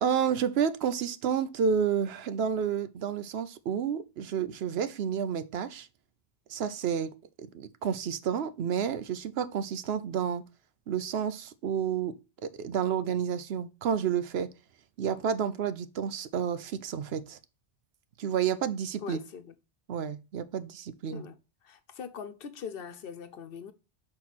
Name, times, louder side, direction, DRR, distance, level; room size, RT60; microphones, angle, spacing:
voice 1, 0.0-5.9 6.5-10.4 10.9-12.1 12.4-14.5 15.0-17.4 18.2-19.2 19.9-21.2, right 7 dB, 75° right, 0.9 m, -30 dB
voice 2, 19.0-19.5 21.1-21.4 21.6-23.7, left 7 dB, 65° left, 0.9 m, -41 dB
6.3 x 4.4 x 4.1 m
omnidirectional pair, 1.1 m